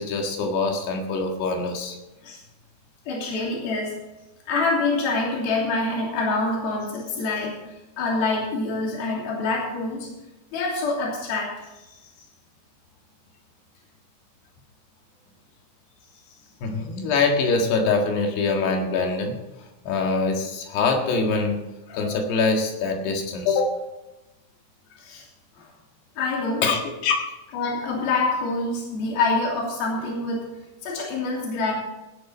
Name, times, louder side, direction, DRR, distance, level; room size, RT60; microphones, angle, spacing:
voice 1, 0.0-2.0 16.6-19.4 19.8-23.8 26.6-27.3, left 4 dB, 80° left, 2 dB, 3.9 m, -24 dB
voice 2, 3.1-4.0 4.5-7.6 8.0-10.1 10.5-11.8 25.0-25.2 25.6-25.7 26.2-26.6 27.5-30.4 30.8-31.7, left 3 dB, 65° left, -3 dB, 4.8 m, -26 dB
17.5 x 9.9 x 4.3 m, 1.0 s
omnidirectional pair, 4.7 m